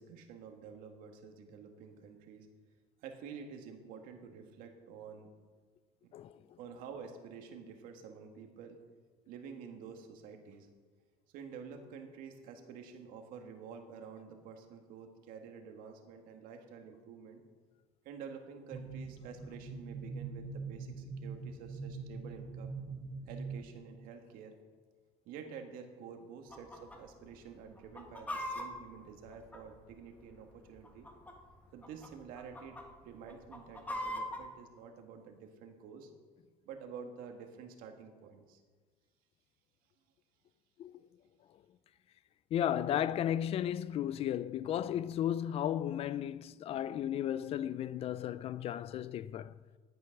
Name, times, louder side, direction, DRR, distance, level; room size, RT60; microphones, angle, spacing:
voice 1, 0.0-2.5 3.0-5.3 6.0-6.1 6.6-8.8 9.3-10.7 11.3-17.4 18.0-22.7 23.3-24.5 25.3-31.1 31.7-36.1 36.7-38.6, right 6 dB, 75° right, 1.8 m, -49 dB
sound 1, 18.7-23.7, right 4 dB, 20° right, 0.9 m, -43 dB
Chicken rooster, 26.5-27.0 27.2-27.3 27.8-30.0 30.8-31.5 31.8-32.1 32.4-32.8 33.3-34.4, left 1 dB, 10° left, 1.3 m, -40 dB
voice 2, 42.5-49.5, left 10 dB, 45° left, 0.4 m, -34 dB
12.0 x 9.1 x 5.9 m
cardioid pair, 155°, 15 cm